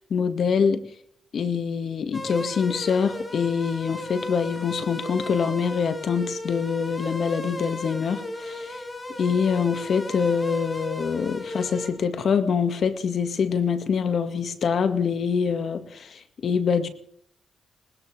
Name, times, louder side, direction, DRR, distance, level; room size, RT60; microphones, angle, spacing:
voice 1, 0.1-0.8 1.3-8.7 9.2-16.9, left 6 dB, 65° left, 10 dB, 2.1 m, -25 dB
sound 1, 2.1-11.9, left 1 dB, 25° left, 4.2 m, -35 dB
21.0 x 19.5 x 3.5 m, 0.63 s
cardioid pair, 65°, 0 cm